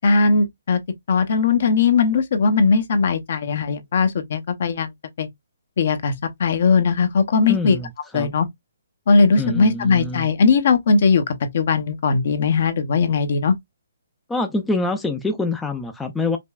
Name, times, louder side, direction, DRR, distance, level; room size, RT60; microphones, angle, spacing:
voice 1, 0.0-0.8 1.1-4.9 5.2-5.3 5.8-6.1 6.4-7.8 8.1-8.5 9.1-13.5, left 4 dB, 50° left, 0.8 m, -19 dB
voice 2, 7.5-8.3 9.4-10.3 14.3-16.4, left 3 dB, 5° left, 0.4 m, -25 dB
5.2 x 2.2 x 2.4 m
hypercardioid pair, 160°, 0 cm